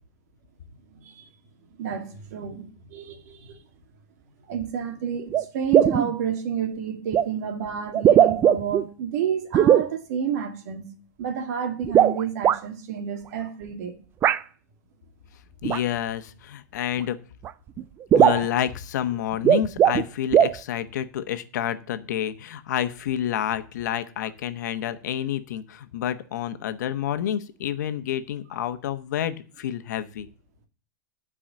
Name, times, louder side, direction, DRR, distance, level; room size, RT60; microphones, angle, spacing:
voice 1, 0.9-1.3 1.8-3.6 4.5-10.9 11.2-14.0, right 8 dB, 60° right, 2.1 m, -30 dB
sound 1, 4.6-4.7 5.3-5.4 5.7-6.1 7.1-7.3 7.9-8.8 9.5-9.9 11.8-12.6 14.2-14.4 15.6-15.8 17.0-17.1 17.4-17.5 17.8-17.9 18.1-18.5 19.3-20.1 20.3-20.6, right 10 dB, 25° right, 0.4 m, -18 dB
voice 2, 15.6-17.2 18.1-30.3, left 10 dB, 75° left, 1.1 m, -29 dB
11.5 x 4.8 x 7.5 m
supercardioid pair, 150°, 9 cm